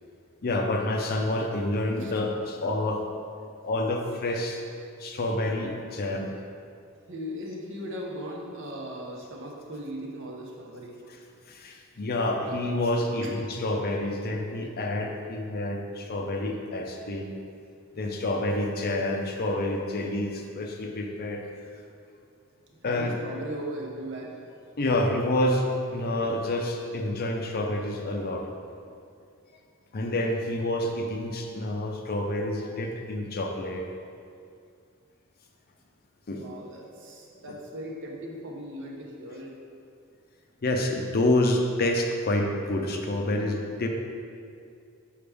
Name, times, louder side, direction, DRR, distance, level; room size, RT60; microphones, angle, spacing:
voice 1, 0.4-3.0 3.6-4.6 5.0-6.3 11.1-11.2 11.5-17.3 17.9-21.4 22.8-23.2 24.8-28.5 29.9-33.9 36.3-36.4 37.5-37.6 40.6-43.9, left 1 dB, 45° left, 2 dB, 0.6 m, -28 dB
voice 2, 7.1-10.9 13.2-13.4 22.7-24.4 36.3-39.6, equal, 60° right, -1 dB, 0.9 m, -38 dB
6.9 x 4.7 x 3.4 m, 2.4 s
head